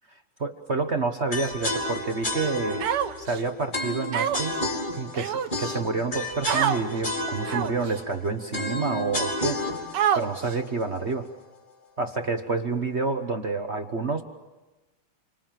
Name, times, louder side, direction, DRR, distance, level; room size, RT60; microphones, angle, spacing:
voice 1, 0.4-2.8 3.2-4.6 5.0-9.9 10.1-11.3 12.0-14.2, right 4 dB, 35° right, 5 dB, 1.2 m, -28 dB
sound 1, 1.3-11.4, left 1 dB, 20° left, 2.4 m, -32 dB
Human voice, 2.8-3.4 4.1-4.6 5.2-5.8 6.4-6.8 7.5-7.9 8.6-8.7 9.9-10.5, right 9 dB, 75° right, 2.0 m, -26 dB
29.0 x 25.0 x 7.6 m, 1.1 s
omnidirectional pair, 2.4 m